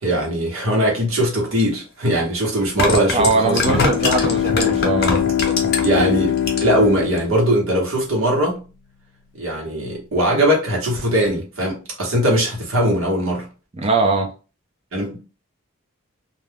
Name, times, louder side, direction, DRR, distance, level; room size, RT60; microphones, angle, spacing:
voice 1, 0.0-3.8 5.8-8.6 9.4-13.5 14.9-15.2, right 1 dB, 80° right, 1.1 m, -20 dB
sound 1, 1.6-1.7 2.6-6.0 6.4-6.9 7.2-7.3, left 3 dB, 50° left, 0.7 m, -22 dB
voice 2, 3.1-5.2 13.8-14.3, right 3 dB, 30° right, 0.5 m, -20 dB
Bowed string instrument, 3.4-8.0, left 9 dB, 85° left, 0.4 m, -23 dB
2.4 x 2.2 x 3.3 m
head